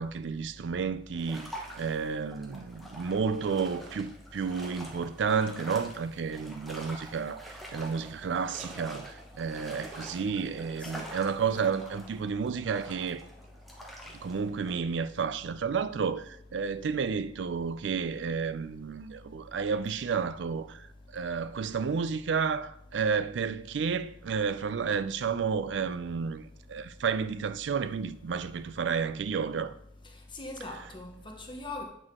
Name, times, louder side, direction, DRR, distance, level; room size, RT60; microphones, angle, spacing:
voice 1, 0.0-13.2 14.2-20.9 21.1-29.7, right 6 dB, 80° right, 0.4 m, -31 dB
sound 1, 1.2-14.8, equal, ahead, 1.1 m, -46 dB
voice 2, 30.3-31.8, left 2 dB, 25° left, 1.0 m, -41 dB
8.3 x 6.2 x 3.7 m
head